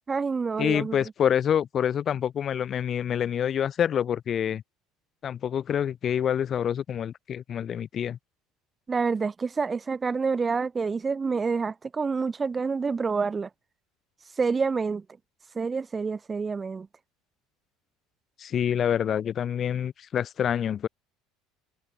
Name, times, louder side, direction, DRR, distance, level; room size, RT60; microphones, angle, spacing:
voice 1, 0.1-1.0 8.9-13.5 14.4-15.0 15.5-16.9, right 5 dB, 25° right, 0.5 m, -27 dB
voice 2, 0.6-4.6 5.2-8.2 18.4-20.9, left 9 dB, 45° left, 0.7 m, -27 dB
hypercardioid pair, 75°, 0 cm